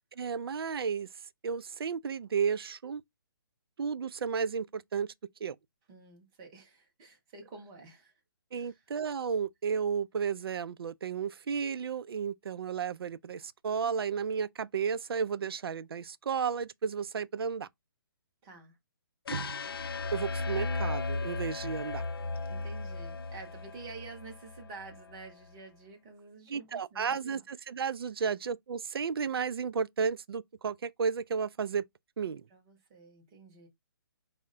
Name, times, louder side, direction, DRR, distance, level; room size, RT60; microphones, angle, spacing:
voice 1, 0.2-1.1 1.4-3.0 3.8-5.1 5.4-5.6 8.5-17.7 19.3-19.7 20.1-22.0 26.5-31.8 32.2-32.5, right 6 dB, 90° right, 0.4 m, -33 dB
voice 2, 5.9-8.1 8.5-8.8 18.4-18.7 22.5-27.4 32.5-33.7, right 4 dB, 10° right, 0.6 m, -49 dB
sound 1, 19.3-25.3, left 3 dB, 75° left, 0.5 m, -36 dB
4.4 x 2.1 x 3.6 m
hypercardioid pair, 175°, 12 cm